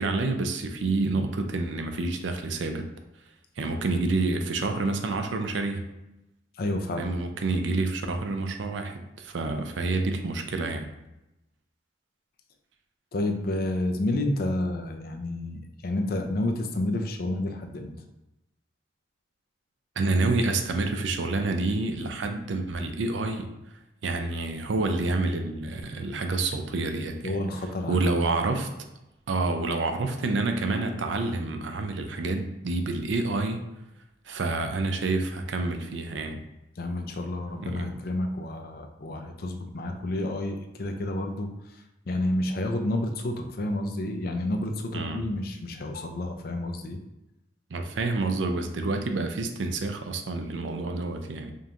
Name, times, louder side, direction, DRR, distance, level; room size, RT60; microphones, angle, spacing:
voice 1, 0.0-2.9 3.6-5.9 7.0-10.9 20.0-23.5 24.0-27.4 27.9-28.7 29.3-33.6 34.3-36.4 37.6-37.9 44.9-45.2 47.7-51.5, right 3 dB, 90° right, 6 dB, 0.5 m, -28 dB
voice 2, 6.6-7.1 13.1-18.0 27.2-28.1 36.8-47.0, left 1 dB, 55° left, 5 dB, 0.5 m, -30 dB
5.1 x 2.5 x 2.9 m, 0.92 s
head